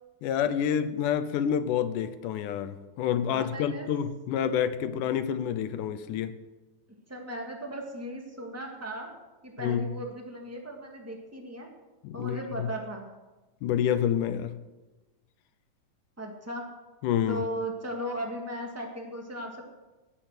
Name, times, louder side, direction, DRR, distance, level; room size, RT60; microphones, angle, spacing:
voice 1, 0.2-6.4 9.6-9.9 12.0-12.7 13.6-14.6 17.0-17.4, left 9 dB, 80° left, 12 dB, 2.1 m, -28 dB
voice 2, 3.3-3.9 4.9-5.0 7.1-9.1 9.4-11.7 12.1-13.1 16.2-16.7 17.3-19.6, equal, 5° right, 1 dB, 1.1 m, -37 dB
19.0 x 6.7 x 7.5 m, 1.1 s
omnidirectional pair, 3.9 m